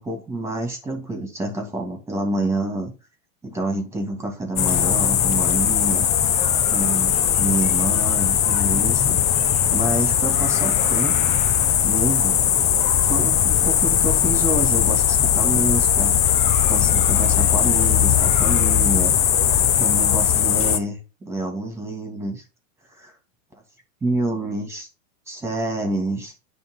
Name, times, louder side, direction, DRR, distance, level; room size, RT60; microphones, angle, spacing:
voice 1, 0.0-2.9 3.4-6.1 6.7-11.4 11.8-12.4 13.0-16.2 16.7-19.1 19.8-22.4 22.9-23.1 24.0-24.9 25.3-26.3, right 2 dB, 5° right, 2 dB, 2.4 m, -28 dB
sound 1, 4.6-20.8, left 9 dB, 20° left, 0.4 m, -19 dB
10.5 x 3.5 x 3.8 m, 0.31 s
hypercardioid pair, 125°, 39 cm